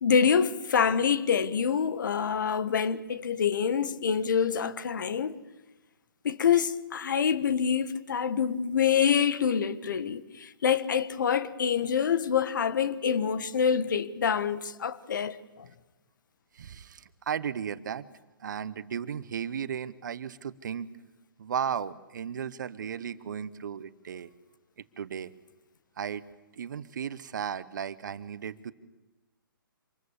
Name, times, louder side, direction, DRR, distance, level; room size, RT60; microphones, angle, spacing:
voice 1, 0.0-5.4 6.2-15.7, left 7 dB, 60° left, 1.4 m, -26 dB
voice 2, 16.5-18.0 18.4-20.9 21.4-24.3 25.0-25.3 26.0-26.2 26.6-28.7, right 8 dB, 55° right, 1.1 m, -35 dB
26.0 x 21.0 x 7.3 m
figure-of-eight pair, 135°, 12 cm